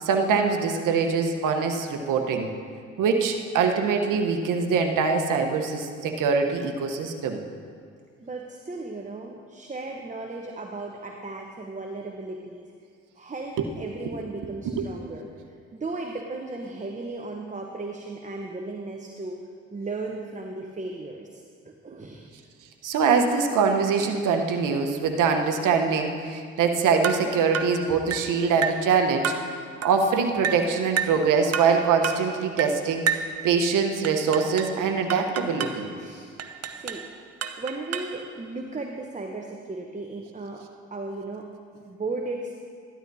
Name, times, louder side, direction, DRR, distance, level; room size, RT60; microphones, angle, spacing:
voice 1, 0.0-2.5 3.0-7.4 13.6-13.7 14.6-14.9 22.8-29.3 29.8-33.0 33.4-35.9, right 5 dB, 65° right, 5 dB, 1.1 m, -23 dB
voice 2, 8.2-12.7 13.2-15.3 15.7-19.5 19.7-22.3 36.0-36.3 36.7-37.1 37.6-42.5, right 3 dB, 20° right, 1 dB, 0.9 m, -36 dB
sound 1, 27.0-27.3 27.5-27.8 28.1-28.3 28.6-28.9 29.2-29.5 29.8-30.0 30.4-30.7 31.0-31.2 31.5-31.8 32.0-32.3 32.6-32.8 33.1-33.3 34.0-34.8 35.1-35.8 36.4-37.1 37.4-38.2, right 7 dB, 50° right, 0.8 m, -29 dB
12.5 x 12.5 x 2.7 m, 2.2 s
hypercardioid pair, 50°, 33 cm